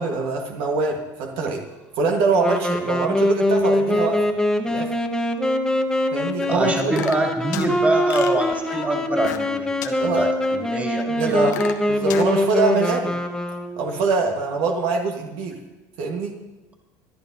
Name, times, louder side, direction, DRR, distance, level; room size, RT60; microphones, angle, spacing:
voice 1, 0.0-1.6 2.0-4.3 4.6-5.0 6.1-7.0 10.0-10.3 11.1-13.2 13.8-15.6 16.0-16.4, right 4 dB, 70° right, 2 dB, 1.4 m, -24 dB
Wind instrument woodwind instrument, 2.3-14.1, left 1 dB, 5° left, 1.0 m, -23 dB
sound 1, 6.4-7.7 8.1-9.5 9.8-9.9 10.4-10.5 11.0-12.3, left 10 dB, 90° left, 1.0 m, -33 dB
voice 2, 6.5-11.5, right 2 dB, 15° right, 1 dB, 2.6 m, -25 dB
25.0 x 11.0 x 2.7 m, 1.1 s
supercardioid pair, 90°, 10 cm